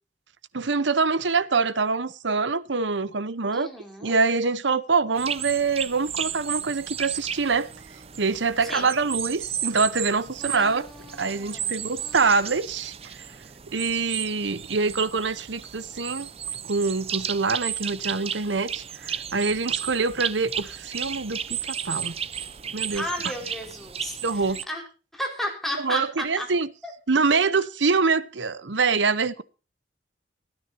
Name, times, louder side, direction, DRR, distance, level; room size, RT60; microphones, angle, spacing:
voice 1, 0.5-3.7 4.0-7.7 8.2-13.2 13.7-16.3 16.6-22.1 22.7-23.0 24.2-24.6 25.8-26.7 27.1-29.4, right 4 dB, 80° right, 0.9 m, -25 dB
voice 2, 3.5-4.1 8.7-8.9 10.4-12.5 23.0-24.8 25.1-26.5 26.8-26.9, left 1 dB, ahead, 4.8 m, -34 dB
sound 1, 5.2-24.7, right 8 dB, 35° right, 0.7 m, -34 dB
27.0 x 9.9 x 2.8 m
head